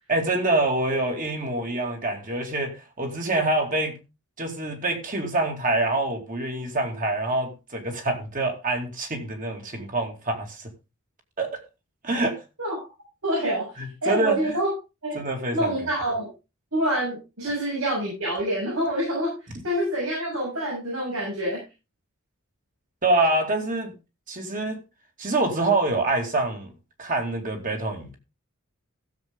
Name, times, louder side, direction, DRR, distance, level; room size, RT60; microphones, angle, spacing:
voice 1, 0.1-3.9 4.4-10.7 11.4-11.6 12.0-12.4 13.8-14.6 15.1-15.7 23.0-23.9 24.3-24.8 25.2-26.7 27.0-28.2, right 2 dB, 40° right, 2.5 m, -26 dB
voice 2, 13.2-13.7 14.0-14.7 15.0-15.2 15.5-16.3 16.7-19.3 19.6-21.6, right 1 dB, 90° right, 7.4 m, -26 dB
15.5 x 7.5 x 3.7 m
head